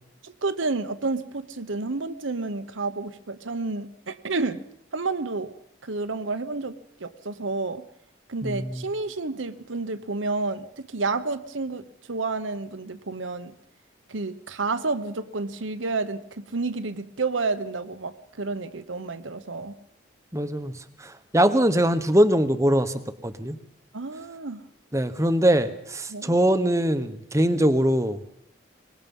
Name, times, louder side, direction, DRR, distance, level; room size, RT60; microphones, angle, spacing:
voice 1, 0.2-4.6 4.9-5.5 5.8-7.9 8.3-13.5 14.1-19.8 23.9-24.6 26.1-26.3, right 3 dB, 80° right, 10 dB, 1.0 m, -30 dB
voice 2, 8.4-8.8 20.3-20.7 21.3-22.9 23.2-23.6 24.9-28.2, right 1 dB, 15° right, 11 dB, 1.1 m, -22 dB
23.5 x 20.5 x 5.5 m, 0.73 s
head